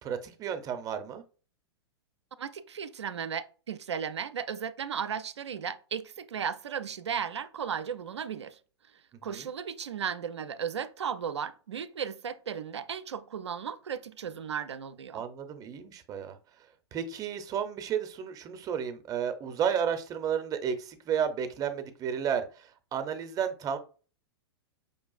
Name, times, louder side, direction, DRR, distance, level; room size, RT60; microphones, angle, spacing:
voice 1, 0.0-1.2 9.2-9.5 15.1-16.4 16.9-23.8, right 8 dB, 25° right, 0.5 m, -32 dB
voice 2, 2.4-8.6 9.2-15.2, right 7 dB, 80° right, 0.4 m, -35 dB
5.4 x 2.4 x 2.3 m
figure-of-eight pair, 105°, 14 cm